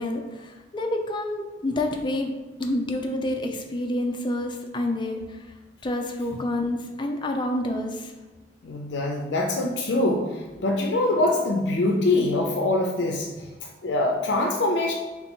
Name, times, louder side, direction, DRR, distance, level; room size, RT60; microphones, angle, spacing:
voice 1, 0.0-2.3 2.6-5.5 5.8-8.1, left 1 dB, 25° left, 3 dB, 0.5 m, -28 dB
voice 2, 8.6-13.5 13.8-14.9, left 2 dB, 85° left, 2 dB, 0.5 m, -24 dB
3.7 x 2.9 x 4.3 m, 1.3 s
head